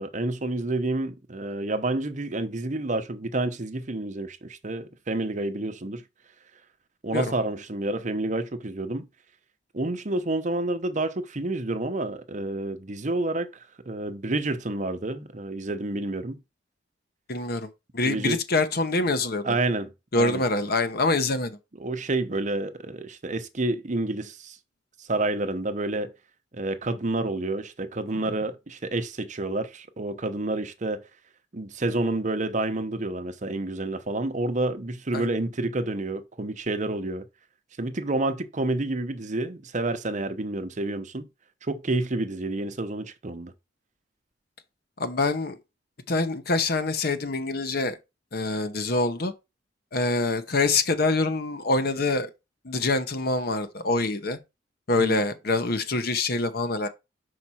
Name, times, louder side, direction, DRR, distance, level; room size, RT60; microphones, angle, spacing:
voice 1, 0.0-6.0 7.0-9.1 9.7-16.4 18.0-18.4 19.4-20.4 21.8-24.6 25.0-26.1 26.5-31.0 31.5-37.3 37.8-41.3 41.7-43.5 55.0-55.2, right 2 dB, 40° right, 0.8 m, -29 dB
voice 2, 17.3-19.5 20.1-21.6 35.1-35.3 45.0-45.6 46.1-48.0 48.3-49.3 49.9-52.3 52.6-54.4 54.9-56.9, left 3 dB, 55° left, 0.9 m, -25 dB
5.9 x 4.8 x 4.3 m
head